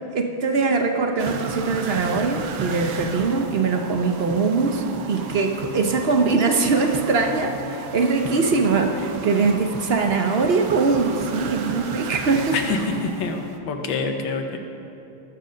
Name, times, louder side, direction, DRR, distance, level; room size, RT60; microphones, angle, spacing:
voice 1, 0.1-12.6, right 4 dB, 60° right, 4 dB, 0.6 m, -22 dB
sound 1, 1.2-13.6, right 4 dB, 90° right, 1.6 m, -34 dB
voice 2, 12.5-14.6, left 4 dB, 75° left, 4 dB, 1.7 m, -26 dB
19.0 x 7.6 x 5.2 m, 2.9 s
omnidirectional pair, 2.1 m